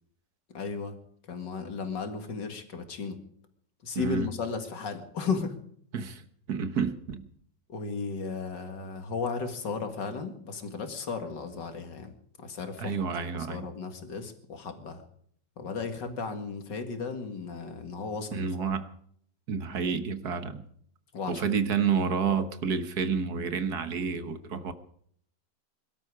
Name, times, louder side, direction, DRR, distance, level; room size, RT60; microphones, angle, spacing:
voice 1, 0.5-1.0 1.3-3.2 3.8-5.6 7.7-12.1 12.4-13.0 13.3-15.0 15.6-18.7 21.1-21.6, left 5 dB, 90° left, 6 dB, 2.7 m, -35 dB
voice 2, 4.0-4.3 5.9-7.3 12.8-13.7 18.3-18.9 19.5-20.6 21.3-24.7, right 6 dB, 65° right, 10 dB, 1.8 m, -29 dB
22.5 x 12.5 x 4.9 m, 0.64 s
omnidirectional pair, 1.9 m